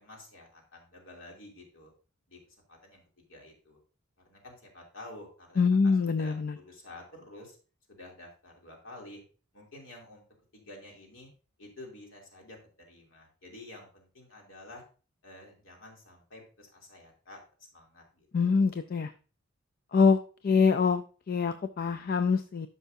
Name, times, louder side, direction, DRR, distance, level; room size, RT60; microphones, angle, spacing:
voice 1, 0.0-1.9 2.3-3.8 4.2-7.6 7.9-9.2 9.5-10.2 10.5-11.3 11.6-12.6 12.9-14.8 15.2-17.4 17.7-18.8, left 1 dB, 70° left, 0 dB, 2.8 m, -50 dB
voice 2, 5.6-6.6 18.3-19.1 19.9-20.2 20.4-22.7, left 5 dB, 45° left, 10 dB, 0.4 m, -25 dB
12.5 x 5.5 x 2.6 m, 0.37 s
head